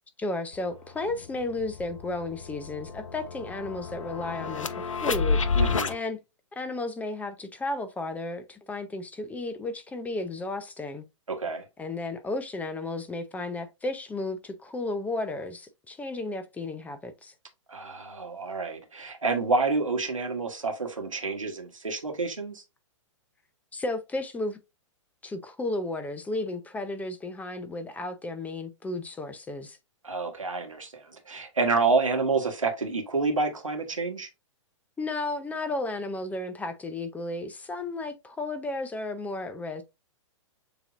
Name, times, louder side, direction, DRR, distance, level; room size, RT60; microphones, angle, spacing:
voice 1, 0.2-5.4 5.9-6.2 6.5-11.0 11.8-17.3 23.7-24.6 25.2-29.8 35.0-39.8, left 2 dB, 10° left, 0.5 m, -33 dB
sound 1, 0.5-0.6 1.0-6.0, left 5 dB, 80° left, 0.5 m, -30 dB
voice 2, 5.5-5.9 11.3-11.6 17.7-22.6 30.0-34.3, right 3 dB, 85° right, 1.4 m, -28 dB
6.8 x 2.8 x 2.5 m
figure-of-eight pair, 115°, 16 cm